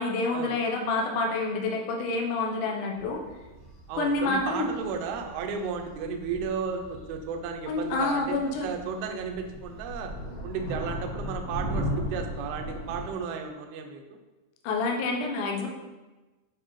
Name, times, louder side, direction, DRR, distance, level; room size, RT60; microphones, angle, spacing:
voice 1, 0.0-3.2 4.0-4.7 7.7-8.7 14.6-15.7, left 3 dB, 70° left, 1 dB, 2.0 m, -28 dB
sound 1, 2.9-13.1, equal, 50° left, 2.3 m, -37 dB
voice 2, 3.9-10.1 10.4-14.2, right 6 dB, 80° right, 4 dB, 2.5 m, -34 dB
8.7 x 4.8 x 3.1 m, 1.2 s
omnidirectional pair, 4.6 m